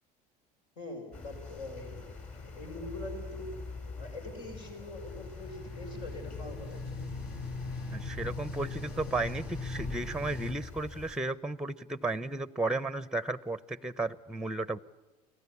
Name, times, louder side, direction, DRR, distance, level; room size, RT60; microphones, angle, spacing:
voice 1, 0.8-3.5 4.0-7.1, left 1 dB, 70° left, 3 dB, 6.5 m, -43 dB
sound 1, 1.1-11.2, left 4 dB, 35° left, 5.8 m, -45 dB
sound 2, 5.0-10.5, left 3 dB, 50° left, 7.7 m, -40 dB
voice 2, 7.9-14.8, right 2 dB, 5° right, 17 dB, 0.8 m, -34 dB
29.5 x 20.0 x 8.5 m, 1.2 s
hypercardioid pair, 80°, 21 cm